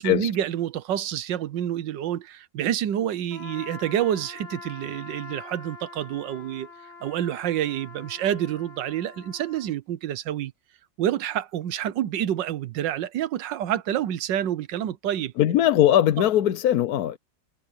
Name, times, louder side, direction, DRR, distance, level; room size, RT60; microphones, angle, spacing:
voice 1, 0.0-6.7 7.0-10.5 11.0-15.3 16.2-16.3, right 11 dB, 85° right, 1.5 m, -28 dB
Trumpet, 3.3-9.7, left 4 dB, 35° left, 5.5 m, -44 dB
voice 2, 15.4-17.2, left 12 dB, 65° left, 1.1 m, -20 dB
omnidirectional pair, 1.9 m